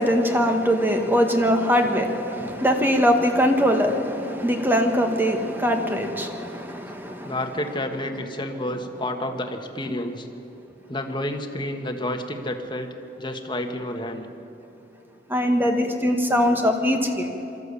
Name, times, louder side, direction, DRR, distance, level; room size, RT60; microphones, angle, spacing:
voice 1, 0.0-7.4 15.3-17.3, equal, 10° right, 4 dB, 1.7 m, -22 dB
voice 2, 7.3-10.3 10.9-14.3 15.6-15.7, left 1 dB, 25° left, 5 dB, 1.5 m, -30 dB
23.5 x 13.5 x 8.4 m, 2.8 s
head